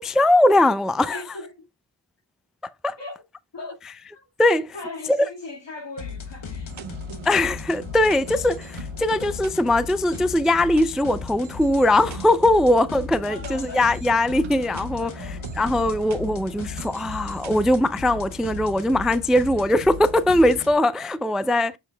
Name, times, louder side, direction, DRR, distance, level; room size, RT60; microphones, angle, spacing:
voice 1, 0.0-1.2 2.8-3.0 4.4-4.7 5.1-5.3 7.3-21.8, left 1 dB, ahead, 0.3 m, -20 dB
voice 2, 1.1-1.7 3.0-3.2 3.5-3.8 4.1-4.3 4.7-6.7 7.1-7.3 13.2-13.9 14.9-15.5, left 2 dB, 65° left, 2.1 m, -38 dB
sound 1, 6.0-20.7, left 5 dB, 90° left, 1.2 m, -36 dB
sound 2, 6.7-17.5, right 6 dB, 80° right, 0.9 m, -43 dB
7.3 x 6.3 x 2.2 m
wide cardioid pair, 60°, 47 cm